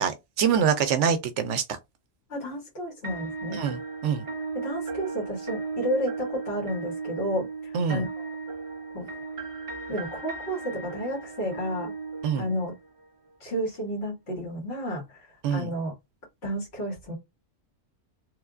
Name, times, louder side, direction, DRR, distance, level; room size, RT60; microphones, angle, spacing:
voice 1, 0.0-1.6 3.5-4.3 7.7-8.0 12.2-12.5 15.4-15.7, right 7 dB, 75° right, 0.9 m, -25 dB
voice 2, 2.3-3.6 4.5-7.5 7.9-8.3 8.9-9.1 9.9-11.9 12.4-12.7 13.4-15.9 16.4-17.1, equal, 55° left, 2.0 m, -31 dB
sound 1, 3.0-13.1, right 4 dB, 40° right, 0.5 m, -36 dB
3.3 x 3.2 x 2.4 m
omnidirectional pair, 1.3 m